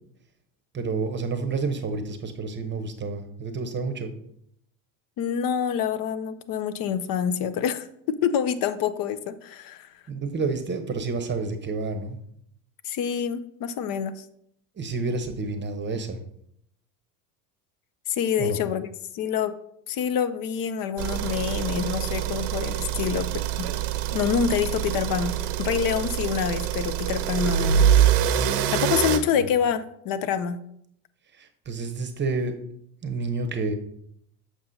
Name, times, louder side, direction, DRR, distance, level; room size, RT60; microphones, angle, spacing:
voice 1, 0.7-4.1 10.1-12.2 14.8-16.2 18.4-18.6 29.4-29.5 31.3-32.5 33.0-33.7, right 4 dB, 25° right, 8 dB, 0.8 m, -29 dB
voice 2, 5.2-10.0 12.8-14.2 18.1-18.9 19.1-19.6 19.9-23.7 24.1-27.8 28.7-30.6, left 8 dB, 50° left, 14 dB, 0.6 m, -27 dB
sound 1, 21.0-29.2, right 9 dB, 80° right, 0.8 m, -25 dB
7.2 x 5.9 x 2.7 m, 0.73 s
supercardioid pair, 90°, 46 cm